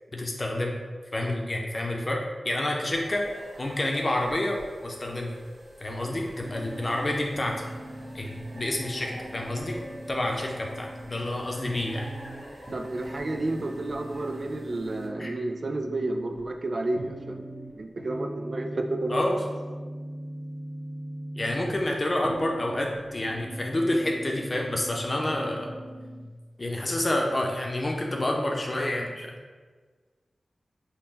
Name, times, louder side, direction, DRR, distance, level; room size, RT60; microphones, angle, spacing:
voice 1, 0.1-0.7 1.1-3.2 3.6-5.3 5.8-7.6 8.1-9.8 10.1-12.1 15.2-15.3 19.1-19.4 21.4-25.7 26.6-29.3, left 1 dB, 45° left, 0 dB, 0.6 m, -28 dB
sound 1, 2.9-15.1, equal, 35° right, 1.3 m, -47 dB
sound 2, 6.4-26.3, right 1 dB, 20° right, 0.9 m, -41 dB
voice 2, 12.7-17.5 17.7-19.4, right 2 dB, 60° right, 4 dB, 0.3 m, -31 dB
3.8 x 2.2 x 3.9 m, 1.4 s
cardioid pair, 40°, 0 cm